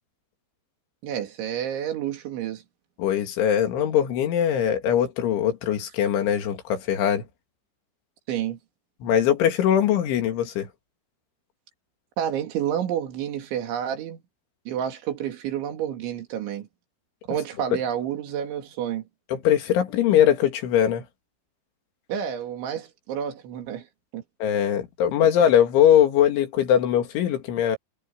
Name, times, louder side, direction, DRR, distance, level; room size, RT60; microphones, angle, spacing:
voice 1, 1.0-2.6 8.3-8.6 12.2-14.2 14.7-16.7 17.3-19.0 22.1-23.9 24.1-24.2 25.2-25.3, right 9 dB, 80° right, 4.8 m, -29 dB
voice 2, 3.0-7.2 9.0-10.7 19.3-21.0 24.4-27.8, left 10 dB, 85° left, 4.7 m, -21 dB
omnidirectional pair, 5.3 m